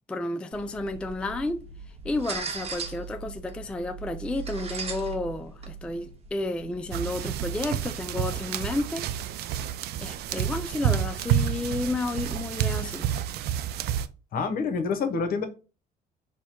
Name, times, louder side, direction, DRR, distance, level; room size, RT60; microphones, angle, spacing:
voice 1, 0.1-1.6 2.0-9.1 10.0-13.1, left 2 dB, 5° left, 0.3 m, -31 dB
sound 1, 0.5-7.8, right 5 dB, 35° right, 0.9 m, -39 dB
sound 2, 6.9-14.1, right 10 dB, 70° right, 0.4 m, -29 dB
voice 2, 14.3-15.5, left 5 dB, 60° left, 0.8 m, -27 dB
4.4 x 2.1 x 4.3 m
cardioid pair, 110°, 17 cm